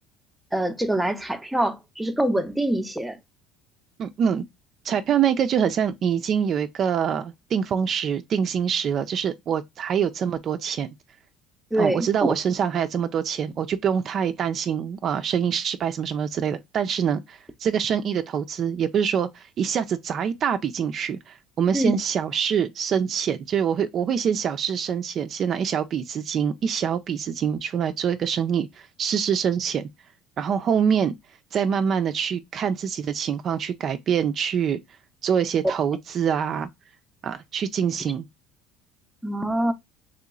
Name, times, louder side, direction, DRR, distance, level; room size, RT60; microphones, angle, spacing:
voice 1, 0.5-3.2 11.7-12.3 21.7-22.0 39.2-39.7, right 1 dB, 5° right, 0.6 m, -24 dB
voice 2, 4.0-4.4 4.8-10.9 11.8-29.9 30.4-31.1 31.5-34.8 35.2-36.7 37.2-38.2, right 8 dB, 50° right, 0.4 m, -25 dB
3.0 x 2.9 x 3.7 m
supercardioid pair, 100°, 0 cm